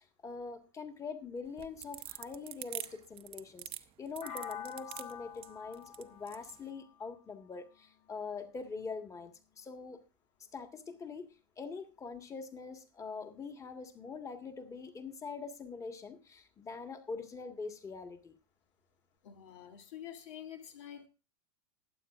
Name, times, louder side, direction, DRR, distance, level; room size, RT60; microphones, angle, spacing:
voice 1, 0.0-3.6 4.0-9.3 9.6-10.0 10.5-11.3 11.6-18.3, left 4 dB, 20° left, 1.6 m, -43 dB
sound 1, 1.5-6.6, right 13 dB, 40° right, 0.8 m, -44 dB
sound 2, 4.2-8.1, left 8 dB, 50° left, 2.9 m, -47 dB
voice 2, 19.2-21.1, left 10 dB, 75° left, 2.2 m, -47 dB
20.5 x 8.8 x 2.5 m
supercardioid pair, 115°, 15 cm